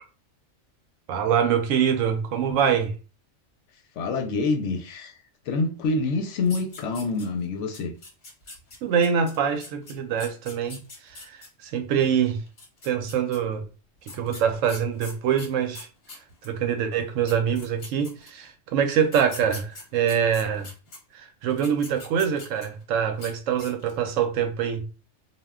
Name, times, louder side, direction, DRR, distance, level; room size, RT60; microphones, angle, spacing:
voice 1, 1.1-2.9 8.8-12.4 12.8-13.6 14.1-15.9 16.4-20.7 21.1-24.8, right 8 dB, 85° right, 0.9 m, -25 dB
voice 2, 3.9-5.2 5.5-8.0, left 3 dB, 75° left, 0.9 m, -26 dB
sound 1, 6.4-7.4 7.7-11.5 12.5-13.4 14.1-16.5 17.0-17.1 17.3-18.5 19.0-21.0 21.5-22.8 23.1-23.3 23.6-24.0, left 2 dB, 45° left, 0.9 m, -43 dB
2.3 x 2.1 x 3.4 m
omnidirectional pair, 1.3 m